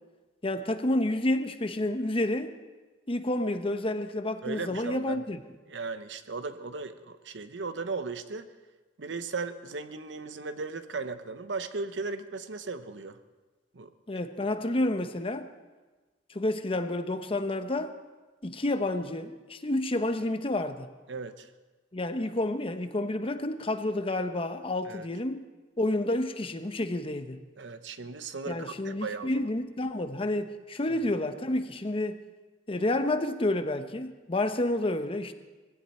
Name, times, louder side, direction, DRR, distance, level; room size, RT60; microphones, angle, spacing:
voice 1, 0.4-2.6 3.1-5.4 14.1-15.5 16.3-17.9 18.4-20.9 21.9-25.4 25.8-27.4 28.5-32.2 32.7-35.3, left 1 dB, 30° left, 0.9 m, -29 dB
voice 2, 4.4-5.2 5.7-8.5 9.0-13.2 13.7-13.9 21.1-21.5 24.9-25.1 27.6-29.5, right 4 dB, 80° right, 0.9 m, -37 dB
20.5 x 16.0 x 4.3 m
head